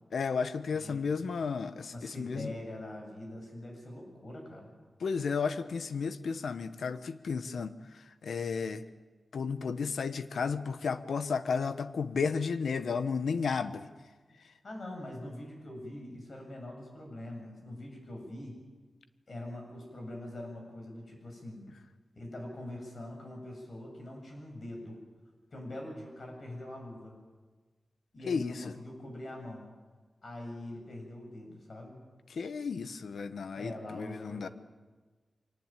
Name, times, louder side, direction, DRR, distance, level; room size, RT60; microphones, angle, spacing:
voice 1, 0.1-2.5 5.0-8.8 9.3-13.9 28.2-28.6 32.3-34.5, left 5 dB, 80° left, 12 dB, 1.1 m, -33 dB
voice 2, 0.7-1.0 1.9-4.7 14.6-18.6 19.3-21.7 22.2-25.0 25.5-27.2 28.1-29.7 30.2-32.0 33.5-34.5, left 1 dB, 45° left, 2 dB, 7.8 m, -43 dB
24.5 x 19.0 x 9.0 m, 1.3 s
wide cardioid pair, 125°, 0 cm